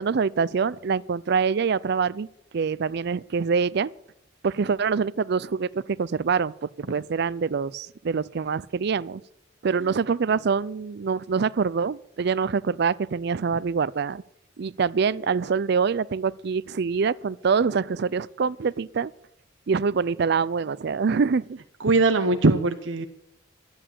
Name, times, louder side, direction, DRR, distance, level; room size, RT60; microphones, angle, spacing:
voice 1, 0.0-2.3 2.5-3.9 4.4-9.2 9.6-14.2 14.6-19.1 19.7-21.6, right 5 dB, 60° right, 0.5 m, -25 dB
voice 2, 21.8-23.1, right 3 dB, 80° right, 0.8 m, -20 dB
12.5 x 8.8 x 8.7 m
head